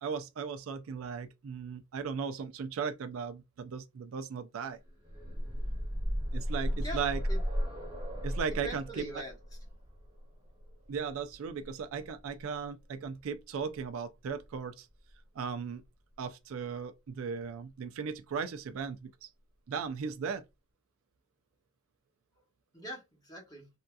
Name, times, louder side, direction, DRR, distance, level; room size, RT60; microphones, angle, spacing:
voice 1, 0.0-4.8 6.3-7.2 8.2-9.0 10.9-14.9 15.4-15.8 16.2-19.3 19.7-20.4, right 6 dB, 65° right, 0.3 m, -37 dB
sound 1, 4.8-12.6 13.8-13.9 14.3-14.4, equal, 25° right, 1.1 m, -35 dB
voice 2, 6.7-7.4 8.6-9.3 22.7-23.7, right 1 dB, 15° left, 1.1 m, -42 dB
3.5 x 2.6 x 2.2 m
head